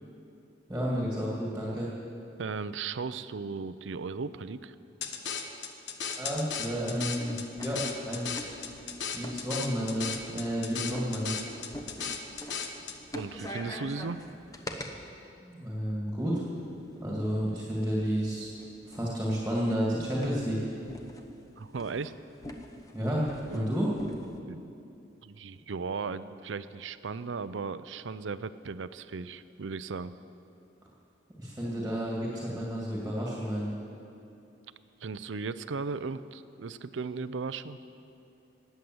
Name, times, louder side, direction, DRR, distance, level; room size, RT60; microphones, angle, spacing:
voice 1, 0.7-1.9 6.2-8.5 9.1-11.4 15.4-16.4 17.0-18.5 18.9-20.9 22.9-24.0 31.4-33.7, equal, 10° right, -5 dB, 2.3 m, -31 dB
voice 2, 2.4-4.7 13.1-14.2 21.6-22.1 23.5-23.7 24.4-24.7 25.2-30.2 35.0-37.8, right 4 dB, 90° right, 14 dB, 0.6 m, -36 dB
sound 1, 5.0-13.0, left 6 dB, 75° left, 1.1 m, -36 dB
sound 2, 6.3-14.9 16.2-24.4, left 1 dB, 20° left, 1.0 m, -46 dB
19.5 x 8.3 x 7.9 m, 2.7 s
head